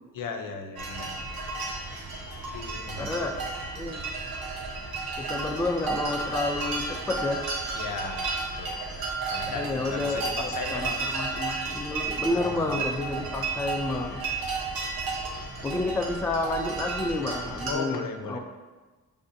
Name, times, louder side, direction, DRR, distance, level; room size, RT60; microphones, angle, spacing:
voice 1, 0.1-1.4 1.7-1.8 2.5-3.3 3.7-3.9 7.8-9.0 9.3-11.1 12.2-12.8 13.1-13.4 17.7-18.4, left 4 dB, 65° left, 5 dB, 0.6 m, -37 dB
sound 1, 0.8-17.7, right 3 dB, 85° right, 0.8 m, -33 dB
voice 2, 3.0-3.4 3.7-4.1 5.2-7.4 9.5-14.2 15.6-18.0 18.3-18.4, left 2 dB, 10° left, 2 dB, 0.4 m, -30 dB
5.3 x 3.4 x 2.6 m, 1.3 s
cardioid pair, 80°, 35 cm